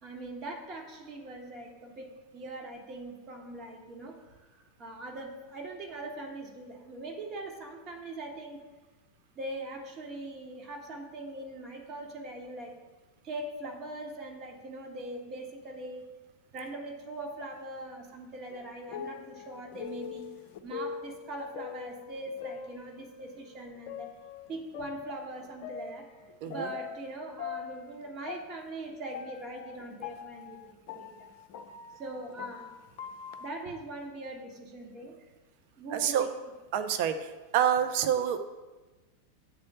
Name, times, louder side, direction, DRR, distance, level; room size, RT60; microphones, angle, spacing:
voice 1, 0.0-4.5 4.8-8.6 9.3-12.8 13.2-16.0 16.5-20.3 20.6-24.2 24.5-26.1 26.4-30.6 30.9-31.3 31.9-32.8 33.4-35.2 35.8-36.3, right 2 dB, 30° right, 2 dB, 1.4 m, -41 dB
sound 1, 18.5-23.3 23.9-27.1 27.4-33.5, left 7 dB, 50° left, 0.5 m, -43 dB
voice 2, 35.9-36.3 36.7-38.4, right 9 dB, 45° right, 8 dB, 0.7 m, -27 dB
7.5 x 4.3 x 6.6 m, 1.2 s
figure-of-eight pair, 90°, 0 cm